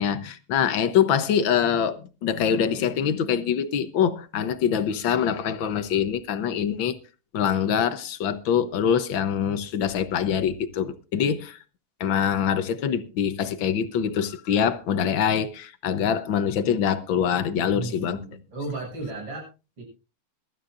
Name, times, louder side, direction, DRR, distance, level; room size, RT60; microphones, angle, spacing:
voice 1, 0.0-7.0 7.3-11.6 12.0-18.2, left 8 dB, 65° left, 1.6 m, -24 dB
voice 2, 17.7-19.5 19.8-19.9, right 3 dB, 60° right, 8.0 m, -34 dB
23.0 x 13.0 x 2.6 m
omnidirectional pair, 2.4 m